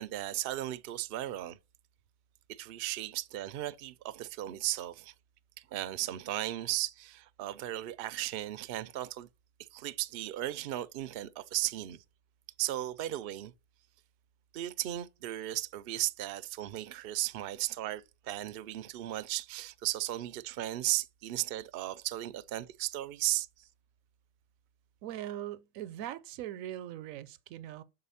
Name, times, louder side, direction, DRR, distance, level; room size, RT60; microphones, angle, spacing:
voice 1, 0.0-1.6 2.5-5.1 5.6-9.3 9.7-12.0 12.6-13.5 14.5-23.5, right 14 dB, 65° right, 0.6 m, -36 dB
voice 2, 25.0-27.8, right 12 dB, 80° right, 1.0 m, -41 dB
6.7 x 4.7 x 5.6 m
omnidirectional pair, 1.4 m